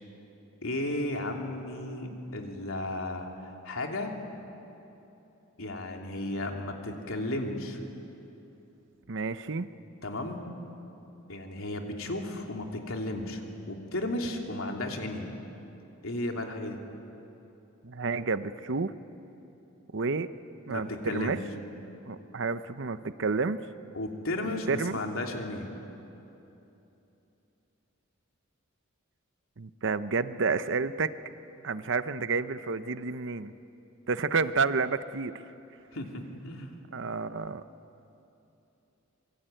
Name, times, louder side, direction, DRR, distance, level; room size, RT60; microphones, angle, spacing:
voice 1, 0.6-4.1 5.6-7.8 10.0-10.5 11.3-15.3 16.0-16.8 20.7-21.4 23.9-25.7 35.9-36.7, left 1 dB, 80° left, 2 dB, 3.1 m, -34 dB
voice 2, 9.1-9.7 17.8-18.9 19.9-20.3 20.7-21.4 22.1-23.6 24.4-25.0 29.6-31.1 31.6-33.5 34.1-35.3 36.9-37.6, right 4 dB, 60° right, 12 dB, 0.8 m, -30 dB
26.5 x 23.0 x 9.1 m, 3.0 s
head